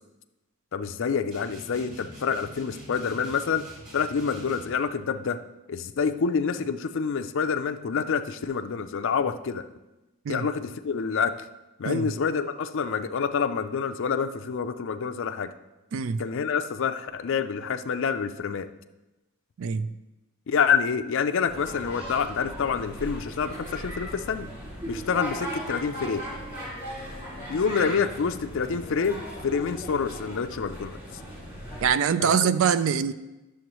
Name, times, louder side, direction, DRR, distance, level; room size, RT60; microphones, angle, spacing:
voice 1, 0.7-3.6 3.9-5.4 5.7-9.6 10.3-11.4 11.8-15.5 16.2-18.7 20.5-24.5 24.9-26.2 27.5-31.0 32.2-32.5, left 6 dB, 60° left, 9 dB, 0.4 m, -27 dB
sound 1, 1.3-4.8, equal, 40° right, 2.7 m, -45 dB
voice 2, 19.6-19.9 31.8-33.1, right 7 dB, 65° right, 14 dB, 0.4 m, -24 dB
sound 2, 21.5-31.9, equal, 25° right, 2.4 m, -37 dB
11.0 x 6.9 x 3.0 m, 1.0 s
head